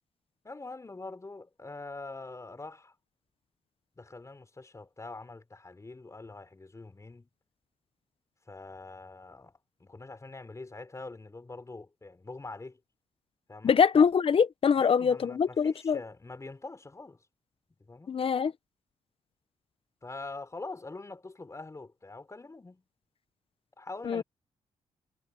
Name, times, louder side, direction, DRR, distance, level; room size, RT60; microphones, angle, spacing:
voice 1, 0.4-2.9 4.0-7.3 8.5-12.8 13.5-13.7 14.8-17.2 17.9-18.2 20.0-22.8 23.8-24.2, left 3 dB, 25° left, 3.9 m, -44 dB
voice 2, 13.6-16.0 18.1-18.5 24.0-24.2, left 6 dB, 50° left, 1.1 m, -24 dB
cardioid pair, 70°, 12 cm